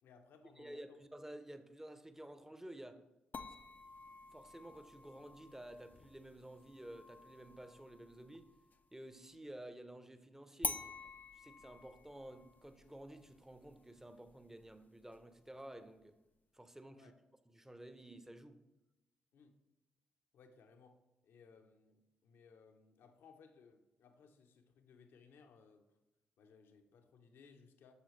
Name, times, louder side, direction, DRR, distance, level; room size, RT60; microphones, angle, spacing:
voice 1, 0.0-1.0 16.9-17.2 19.3-19.6 20.3-25.9 26.4-27.9, left 5 dB, 70° left, 6 dB, 0.8 m, -63 dB
voice 2, 0.6-3.0 4.3-8.5 8.9-10.9 11.3-16.2 16.5-17.1 17.5-18.6, right 1 dB, 10° right, 10 dB, 0.8 m, -52 dB
sound 1, 3.3-8.9 10.6-15.6, left 4 dB, 45° left, 0.5 m, -49 dB
8.1 x 6.2 x 3.2 m, 0.95 s
hypercardioid pair, 40°, 4 cm